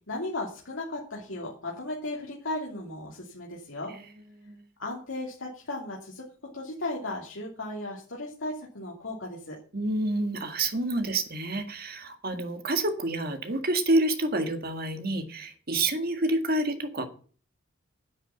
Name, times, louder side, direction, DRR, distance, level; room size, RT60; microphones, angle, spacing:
voice 1, 0.1-3.9 4.8-6.3 6.5-9.6, left 2 dB, 70° left, -3 dB, 2.8 m, -36 dB
voice 2, 3.9-4.6 9.7-17.1, right 2 dB, 50° right, 6 dB, 1.9 m, -28 dB
9.9 x 8.6 x 7.0 m, 0.42 s
head